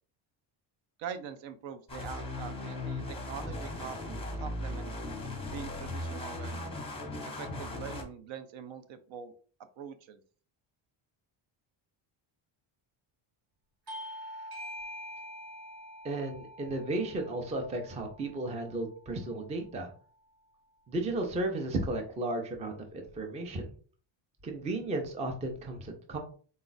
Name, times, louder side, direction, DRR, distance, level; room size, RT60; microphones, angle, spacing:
voice 1, 1.0-4.0 4.3-4.9 5.5-6.8 7.3-9.3 9.8-10.2, right 7 dB, 65° right, 10 dB, 0.6 m, -43 dB
sound 1, 1.9-8.0, left 1 dB, 10° left, 0.7 m, -38 dB
Bell / Doorbell, 13.9-18.9, equal, 45° right, 1.0 m, -45 dB
voice 2, 16.0-19.9 20.9-23.7 24.4-26.2, right 2 dB, 15° right, 4 dB, 0.4 m, -34 dB
4.1 x 2.3 x 3.9 m, 0.42 s
cardioid pair, 165°, 50 cm